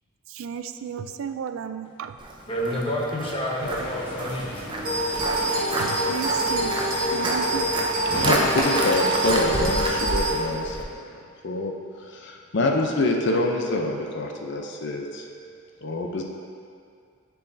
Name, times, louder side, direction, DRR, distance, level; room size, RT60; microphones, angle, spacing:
voice 1, 0.3-2.2 5.8-6.8 7.1-7.7, right 7 dB, 80° right, 10 dB, 0.3 m, -33 dB
Walk footsteps, 2.2-10.8, right 1 dB, 25° right, 0.5 m, -30 dB
voice 2, 2.5-4.7, equal, 25° left, -4 dB, 1.0 m, -29 dB
sound 1, 3.6-8.6, equal, 75° left, 1.4 m, -35 dB
sound 2, 4.9-10.3, right 1 dB, 45° right, 1.1 m, -25 dB
voice 3, 8.2-11.7 12.0-16.2, left 2 dB, 60° left, 1 dB, 0.6 m, -26 dB
10.0 x 4.7 x 2.7 m, 2.3 s
head